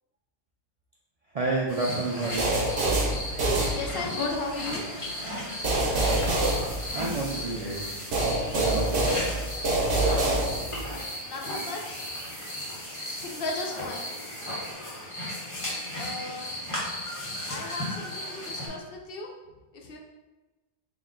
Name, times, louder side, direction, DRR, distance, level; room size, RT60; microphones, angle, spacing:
voice 1, 1.3-2.5 6.9-7.8 8.5-9.1, right 3 dB, 55° right, -4 dB, 0.4 m, -29 dB
sound 1, 1.7-18.7, left 1 dB, 30° left, 0.9 m, -36 dB
sound 2, 2.4-4.3 5.6-7.4 8.1-10.9, right 2 dB, 75° right, 1.0 m, -26 dB
voice 2, 3.7-4.8 11.3-12.1 13.2-14.1 16.0-16.7 17.5-19.3 19.8-20.0, left 3 dB, 65° left, 1 dB, 0.7 m, -35 dB
sound 3, 6.0-14.7, equal, 10° right, 1.1 m, -44 dB
3.9 x 2.1 x 3.6 m, 1.1 s
omnidirectional pair, 1.1 m